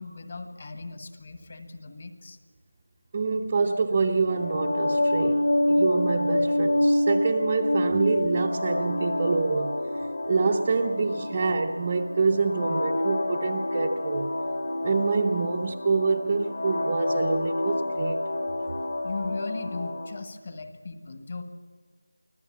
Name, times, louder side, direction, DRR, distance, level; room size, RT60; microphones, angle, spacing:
voice 1, 0.0-2.4 19.0-21.4, left 3 dB, 30° left, 1.6 m, -37 dB
voice 2, 3.1-9.9 10.3-14.3 14.8-18.2, right 4 dB, 20° right, 0.7 m, -26 dB
sound 1, 4.3-20.2, left 1 dB, 55° left, 2.6 m, -27 dB
25.0 x 16.0 x 7.3 m
figure-of-eight pair, 175°, 0 cm